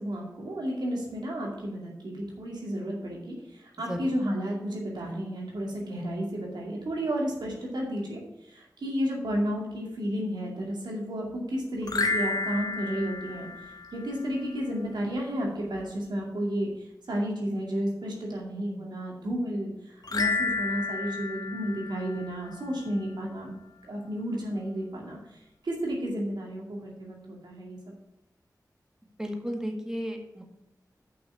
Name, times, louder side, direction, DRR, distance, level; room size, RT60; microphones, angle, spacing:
voice 1, 0.0-16.7 17.1-23.6 23.8-25.2 25.6-27.8, equal, 85° right, -2 dB, 2.4 m, -32 dB
sound 1, 11.8-14.3 20.0-22.7, left 3 dB, 65° left, 1.1 m, -31 dB
voice 2, 29.2-30.4, equal, 10° right, 2 dB, 1.7 m, -33 dB
6.2 x 5.9 x 7.0 m, 0.86 s
cardioid pair, 45°, 7 cm